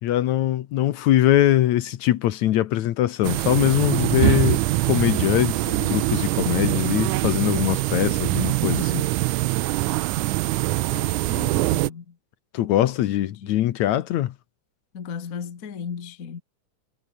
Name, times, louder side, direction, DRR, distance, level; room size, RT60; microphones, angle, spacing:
voice 1, 0.0-9.1 12.5-14.3, left 13 dB, 70° left, 2.2 m, -22 dB
sound 1, 3.2-11.9, right 19 dB, 85° right, 2.1 m, -23 dB
voice 2, 10.9-12.2 13.1-13.7 14.9-16.4, left 6 dB, 35° left, 1.5 m, -36 dB
omnidirectional pair, 3.5 m